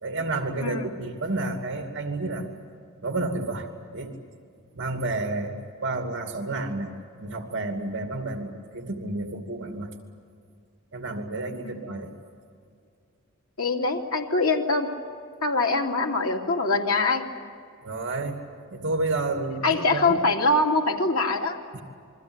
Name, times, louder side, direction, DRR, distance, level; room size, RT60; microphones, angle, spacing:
voice 1, 0.0-2.5 3.0-4.2 4.7-6.9 7.2-9.9 10.9-12.1 17.8-18.4 18.7-20.2 21.7-21.8, right 2 dB, 60° right, 4 dB, 2.6 m, -30 dB
voice 2, 13.6-14.9 15.4-17.2 19.6-21.6, left 3 dB, 80° left, 1 dB, 2.8 m, -23 dB
28.0 x 23.0 x 8.1 m, 2.2 s
head